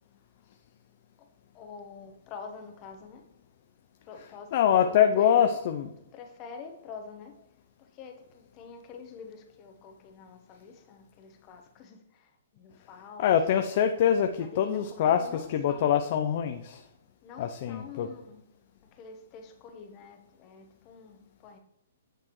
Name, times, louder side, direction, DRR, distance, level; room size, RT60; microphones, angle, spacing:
voice 1, 1.5-3.2 4.0-5.5 6.1-7.3 7.8-13.3 13.6-13.7 14.4-15.9 17.2-18.4 18.9-21.6, left 5 dB, 30° left, 5 dB, 1.2 m, -46 dB
voice 2, 4.5-5.9 13.2-16.8 17.4-18.1, left 9 dB, 50° left, 7 dB, 0.6 m, -24 dB
8.9 x 6.6 x 3.1 m, 0.83 s
hypercardioid pair, 140°, 0 cm